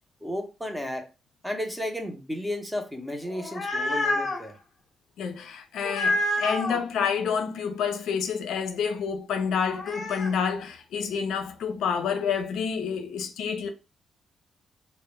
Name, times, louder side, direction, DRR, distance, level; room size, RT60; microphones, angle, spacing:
voice 1, 0.2-1.1 1.4-4.6, left 1 dB, 5° right, 0.5 m, -33 dB
sound 1, 3.3-4.4 5.8-6.8 9.6-10.3, left 1 dB, 50° left, 0.7 m, -28 dB
voice 2, 5.2-13.7, left 6 dB, 90° left, 0.4 m, -28 dB
2.2 x 2.0 x 3.0 m
cardioid pair, 110°, 0 cm